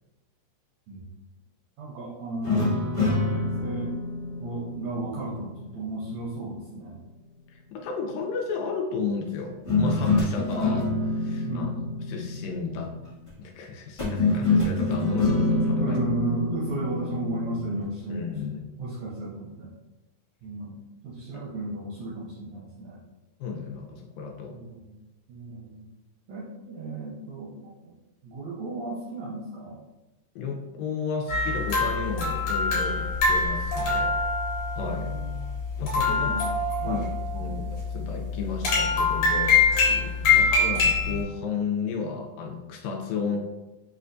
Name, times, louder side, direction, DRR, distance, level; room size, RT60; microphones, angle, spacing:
voice 1, 1.8-3.9 4.4-7.1 11.4-11.8 15.8-18.2 18.8-19.7 20.4-23.0 24.5-25.0 25.3-25.9 26.3-27.9 28.2-29.8 34.8-35.6 35.9-36.5 36.8-37.0 37.4-37.6 40.2-40.5, right 2 dB, 80° right, -5 dB, 1.5 m, -34 dB
sound 1, 2.4-5.8 9.7-13.1 14.0-17.8, left 3 dB, 50° left, 0.8 m, -26 dB
voice 2, 7.5-11.7 12.1-12.9 13.4-16.0 18.1-18.6 21.3-21.4 23.4-24.6 30.4-34.1 34.8-35.1 35.8-36.3 36.8-37.0 37.3-43.4, left 5 dB, 85° left, 1 dB, 2.3 m, -33 dB
sound 2, 31.3-41.2, left 4 dB, 70° left, 2.4 m, -25 dB
5.4 x 2.2 x 2.5 m, 1.1 s
omnidirectional pair, 3.9 m